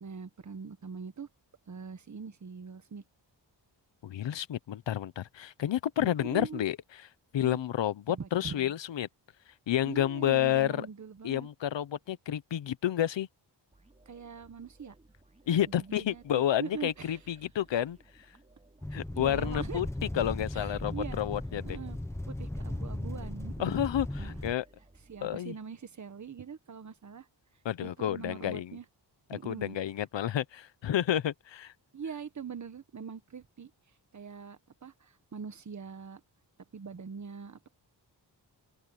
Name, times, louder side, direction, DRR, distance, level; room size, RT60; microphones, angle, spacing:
voice 1, 0.0-1.3 1.7-3.0 6.2-6.6 7.4-7.6 8.1-8.7 9.8-11.5 14.1-14.9 15.7-17.2 18.9-19.8 20.5-21.2 21.6-22.0 22.3-23.8 24.2-24.4 25.1-27.3 27.8-28.8 29.3-29.8 31.9-33.7 34.1-36.2 36.7-37.7, right 6 dB, 40° right, 1.4 m, -43 dB
voice 2, 4.0-6.8 7.3-9.1 9.7-10.9 11.2-13.3 15.5-18.0 18.9-19.9 20.1-21.8 23.6-24.6 25.2-25.5 27.6-28.8 29.3-31.7, left 11 dB, 80° left, 0.9 m, -30 dB
sound 1, 13.7-25.9, right 2 dB, 15° right, 3.5 m, -62 dB
sound 2, 18.8-24.5, left 1 dB, 5° left, 1.0 m, -37 dB
open air
wide cardioid pair, 165°, 43 cm